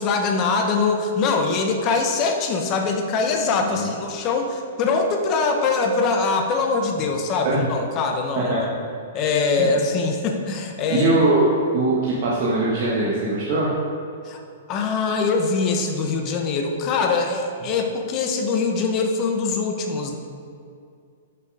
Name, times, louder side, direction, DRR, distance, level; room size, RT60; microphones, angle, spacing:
voice 1, 0.0-8.6 9.1-11.1 14.2-14.4 14.7-20.2, left 4 dB, 30° left, 3 dB, 0.9 m, -23 dB
voice 2, 10.9-13.7, right 2 dB, 45° right, -6 dB, 1.5 m, -21 dB
7.6 x 6.8 x 4.9 m, 2.4 s
hypercardioid pair, 160°, 0 cm